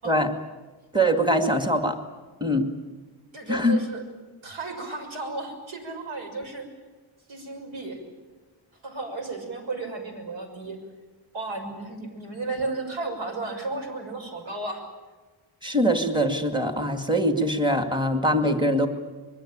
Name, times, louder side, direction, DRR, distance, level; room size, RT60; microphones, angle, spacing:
voice 1, 0.9-2.0 2.4-2.7 3.5-3.8 15.6-18.9, equal, 10° right, 6 dB, 2.2 m, -23 dB
voice 2, 3.3-4.0 4.4-6.7 7.3-8.0 8.8-10.8 11.3-14.8, right 3 dB, 75° right, 5 dB, 6.4 m, -33 dB
25.0 x 22.0 x 8.8 m, 1.3 s
wide cardioid pair, 135°, 47 cm